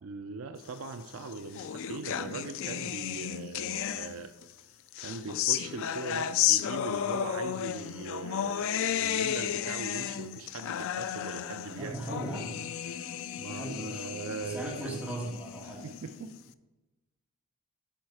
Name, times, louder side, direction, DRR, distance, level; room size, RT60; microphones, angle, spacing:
voice 1, 0.0-4.3 5.0-12.1 12.9-13.1 13.4-15.0 15.8-16.3, right 4 dB, 65° right, 8 dB, 0.5 m, -40 dB
sound 1, 1.0-4.4 4.9-16.4, left 10 dB, 60° left, 0.3 m, -33 dB
voice 2, 11.8-12.6 13.5-14.1 14.4-15.8, right 1 dB, 5° right, -5 dB, 2.3 m, -38 dB
9.0 x 5.5 x 4.7 m, 1.1 s
head